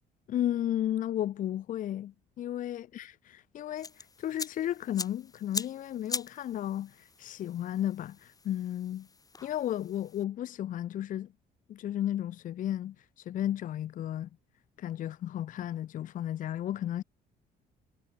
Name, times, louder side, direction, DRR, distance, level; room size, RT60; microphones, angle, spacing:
voice 1, 0.3-3.1 3.5-9.1 9.4-11.3 11.7-14.3 14.8-17.0, left 11 dB, 50° left, 0.7 m, -33 dB
sound 1, 3.8-10.2, left 4 dB, 20° left, 1.9 m, -42 dB
cardioid pair, 110°, 17 cm